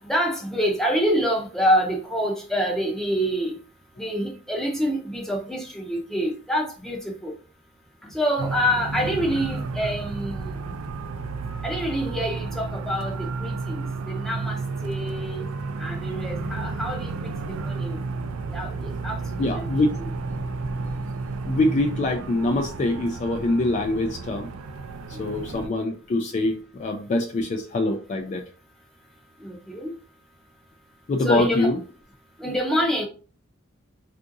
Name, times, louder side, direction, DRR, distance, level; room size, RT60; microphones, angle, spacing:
voice 1, 0.0-3.6 4.0-7.3 8.0-10.8 11.6-15.5 15.8-18.0 18.5-18.7 19.0-20.1 25.2-25.3 29.4-29.9 31.2-31.8 32.4-33.1, equal, ahead, 0.6 m, -27 dB
sound 1, 8.4-25.7, right 3 dB, 80° right, 0.4 m, -32 dB
voice 2, 19.4-20.0 21.5-24.5 25.2-28.4 31.1-31.8, left 2 dB, 35° left, 0.3 m, -24 dB
3.6 x 2.5 x 2.6 m
head